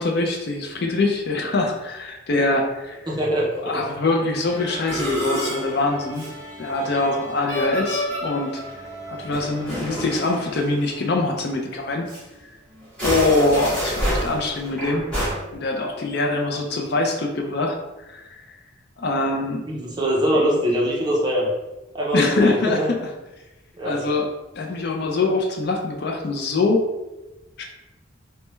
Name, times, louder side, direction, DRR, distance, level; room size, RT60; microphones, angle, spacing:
voice 1, 0.0-3.0 3.6-6.3 6.6-8.6 9.1-12.1 13.0-15.1 15.5-18.4 19.0-19.6 22.1-23.0 23.8-24.3 24.6-26.8 27.6-27.7, left 2 dB, 50° left, 2 dB, 0.4 m, -23 dB
voice 2, 3.1-3.5 19.7-21.5 21.9-22.9 23.7-24.0, equal, 20° right, -4 dB, 0.6 m, -22 dB
Musical instrument, 4.5-11.3 11.6-11.8 12.1-12.2 12.8-15.3, equal, 5° left, 1.2 m, -29 dB
3.2 x 2.2 x 3.0 m, 1.0 s
head